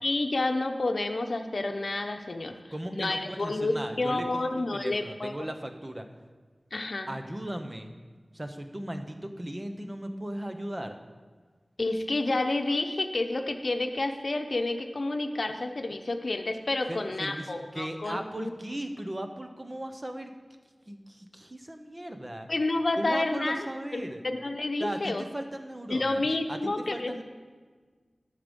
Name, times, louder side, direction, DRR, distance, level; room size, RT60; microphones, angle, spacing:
voice 1, 0.0-2.5 2.9-5.5 6.7-7.1 11.8-18.5 22.5-23.7 23.9-25.2 25.9-27.2, left 2 dB, 65° left, 5 dB, 0.8 m, -29 dB
voice 2, 2.7-6.1 7.1-7.9 8.3-11.0 16.9-20.3 20.9-22.5 23.0-24.2 24.8-27.2, right 1 dB, 25° right, 6 dB, 1.0 m, -37 dB
12.5 x 6.7 x 5.4 m, 1.5 s
wide cardioid pair, 65°, 0 cm